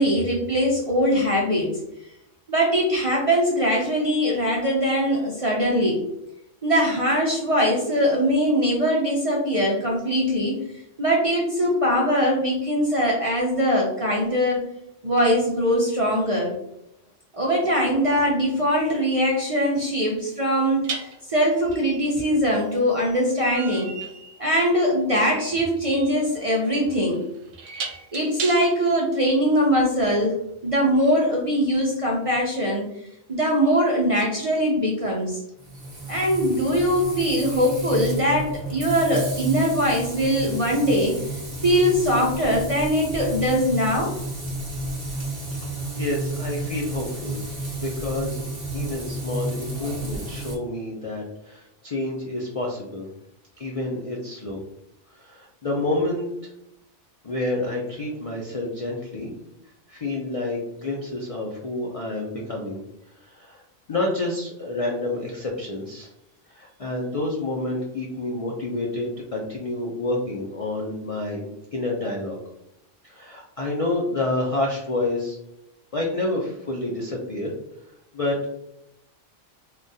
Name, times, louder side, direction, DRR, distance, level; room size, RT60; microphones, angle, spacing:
voice 1, 0.0-1.7 2.5-6.0 6.6-10.6 11.0-14.6 15.0-16.5 17.3-23.9 24.4-27.2 28.1-30.3 30.6-32.8 33.3-35.4 36.1-44.1, equal, 45° right, -3 dB, 0.4 m, -22 dB
sound 1, 18.4-18.6 20.8-28.9, right 5 dB, 85° right, 0.9 m, -37 dB
Frying (food), 35.6-50.6, right 2 dB, 30° right, 0.9 m, -32 dB
voice 2, 46.0-47.4 47.8-48.5 48.7-53.1 53.6-54.6 55.1-56.5 57.2-59.3 59.9-62.8 63.2-63.6 63.9-66.1 66.5-72.4 73.0-75.4 75.9-77.5 78.1-78.4, left 2 dB, 55° left, -1 dB, 0.3 m, -28 dB
3.5 x 2.3 x 2.6 m, 0.82 s
omnidirectional pair, 1.2 m